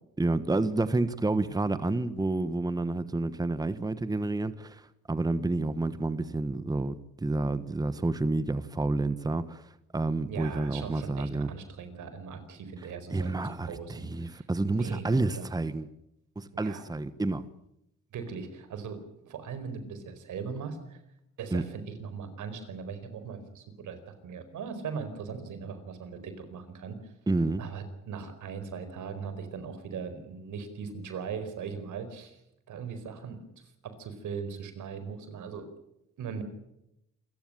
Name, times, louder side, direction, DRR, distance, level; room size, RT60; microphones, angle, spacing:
voice 1, 0.2-9.6 9.9-11.5 13.1-15.9 16.4-17.5 21.5-21.6 27.3-27.6, right 2 dB, 15° right, 1.1 m, -29 dB
voice 2, 10.3-15.5 16.5-16.8 18.1-21.0 21.4-27.1 27.6-32.4 32.7-33.4 33.8-35.7 36.2-36.4, right 6 dB, 85° right, 4.6 m, -39 dB
28.0 x 15.5 x 9.0 m
cardioid pair, 110°, 30 cm